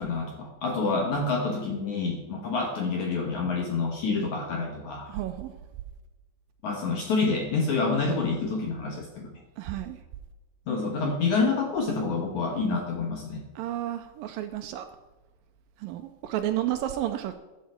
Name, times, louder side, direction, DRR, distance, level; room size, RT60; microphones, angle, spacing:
voice 1, 0.0-5.1 6.6-9.3 10.7-13.4, left 4 dB, 60° left, 1 dB, 2.2 m, -28 dB
voice 2, 5.1-5.5 9.6-10.0 13.6-14.9 15.8-17.4, right 12 dB, 85° right, 8 dB, 2.1 m, -31 dB
14.5 x 8.0 x 4.4 m, 1.2 s
omnidirectional pair, 4.6 m